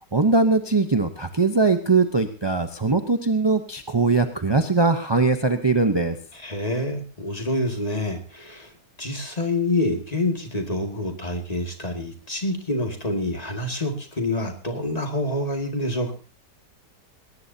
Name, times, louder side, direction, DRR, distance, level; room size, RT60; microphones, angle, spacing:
voice 1, 0.1-6.2, right 3 dB, 30° right, 7 dB, 0.4 m, -21 dB
voice 2, 6.3-8.7 9.0-16.1, left 1 dB, 20° left, 3 dB, 2.1 m, -27 dB
19.5 x 18.5 x 2.8 m, 0.36 s
omnidirectional pair, 1.9 m